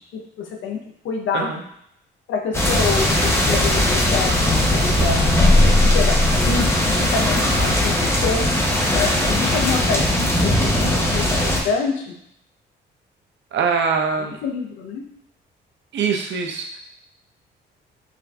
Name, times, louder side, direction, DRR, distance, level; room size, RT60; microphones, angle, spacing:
voice 1, 0.1-0.8 1.0-1.5 2.3-5.3 5.8-6.2 6.4-8.5 8.9-12.1 14.4-15.1, left 5 dB, 75° left, 2 dB, 0.7 m, -27 dB
sound 1, 2.5-11.6, left 1 dB, 15° left, 0.7 m, -18 dB
voice 2, 13.5-14.4 15.9-16.7, right 5 dB, 65° right, 3 dB, 0.7 m, -22 dB
4.9 x 2.5 x 2.3 m, 0.73 s
cardioid pair, 90°, 20 cm